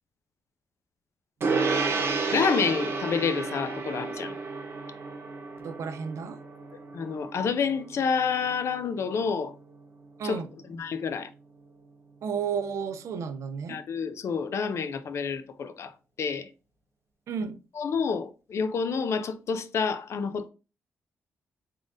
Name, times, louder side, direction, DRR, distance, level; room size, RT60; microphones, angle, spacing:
Gong, 1.4-11.1, right 4 dB, 50° right, 0.9 m, -32 dB
voice 1, 2.3-4.3 6.9-9.5 10.2-10.4 10.7-11.3 13.7-15.9 16.2-16.5 17.8-20.5, left 6 dB, 65° left, 0.5 m, -28 dB
voice 2, 5.6-6.4 10.2-10.5 12.2-13.8 17.3-17.6, right 6 dB, 75° right, 0.5 m, -32 dB
3.7 x 3.6 x 2.5 m
cardioid pair, 85°, 5 cm